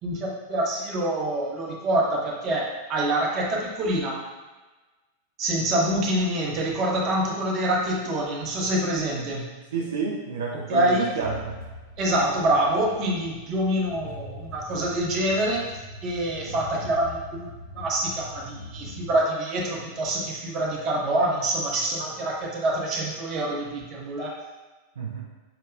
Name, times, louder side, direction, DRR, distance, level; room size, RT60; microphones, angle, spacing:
voice 1, 0.0-4.2 5.4-9.5 10.7-11.1 12.0-15.6 16.0-17.5 17.7-24.3, right 1 dB, 35° right, -3 dB, 0.9 m, -26 dB
voice 2, 9.7-11.6 25.0-25.2, right 4 dB, 65° right, -3 dB, 0.4 m, -30 dB
sound 1, 11.2-19.1, left 1 dB, 90° left, 1.3 m, -42 dB
5.8 x 2.8 x 2.4 m, 1.2 s
figure-of-eight pair, 90°, 0 cm